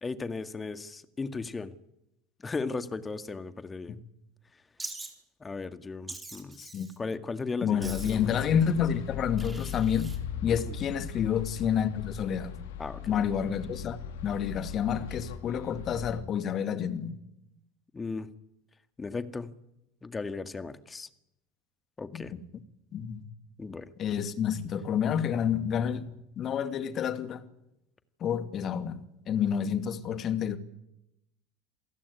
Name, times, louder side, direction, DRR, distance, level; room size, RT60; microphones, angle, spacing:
voice 1, 0.0-1.7 2.4-4.0 5.4-6.6 7.0-8.3 10.5-10.8 12.8-13.1 17.9-18.3 19.0-19.5 20.0-21.1 22.0-22.3 23.6-23.9, left 4 dB, 20° left, 1.9 m, -36 dB
Wild animals, 4.8-5.1 6.1-7.0 7.8-8.3 9.4-10.2, right 2 dB, 15° right, 4.6 m, -43 dB
voice 2, 6.6-6.9 7.6-10.1 10.4-12.5 13.1-17.1 22.1-22.4 22.9-23.2 24.0-26.1 26.4-27.4 28.2-29.0 29.3-30.6, left 8 dB, 40° left, 2.4 m, -29 dB
sound 1, 7.8-16.2, left 8 dB, 65° left, 2.1 m, -39 dB
27.5 x 16.0 x 9.8 m
figure-of-eight pair, 70°, 0 cm